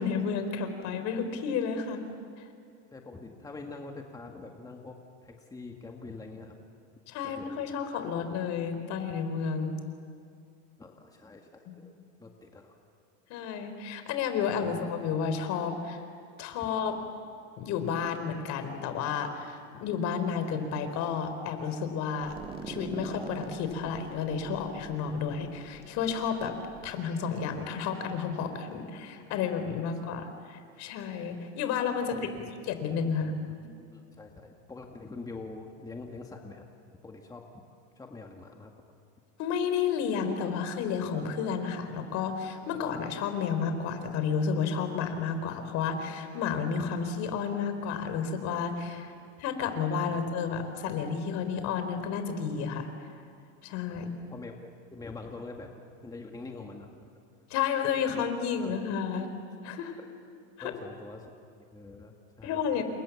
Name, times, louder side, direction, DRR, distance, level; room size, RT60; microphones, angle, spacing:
voice 1, 0.0-2.0 7.1-9.8 13.3-16.0 16.4-17.0 17.6-22.4 22.7-26.5 26.8-32.3 32.7-33.3 39.4-49.1 49.4-53.1 53.6-54.1 57.5-59.3 59.6-60.0 60.6-60.7 62.4-62.8, left 6 dB, 50° left, 8 dB, 4.2 m, -31 dB
voice 2, 2.9-6.6 7.2-7.8 10.8-11.9 12.2-12.8 14.6-14.8 32.1-32.5 33.2-33.3 33.9-36.7 37.0-37.6 38.0-38.7 49.2-49.3 50.1-50.2 53.9-54.6 54.9-56.9 58.1-58.2 58.6-58.8 60.6-61.3 61.6-62.8, left 3 dB, 10° left, 2 dB, 2.1 m, -45 dB
sound 1, 22.2-26.9, right 4 dB, 15° right, 1.6 m, -43 dB
29.5 x 27.5 x 7.3 m, 2.4 s
supercardioid pair, 135°, 36 cm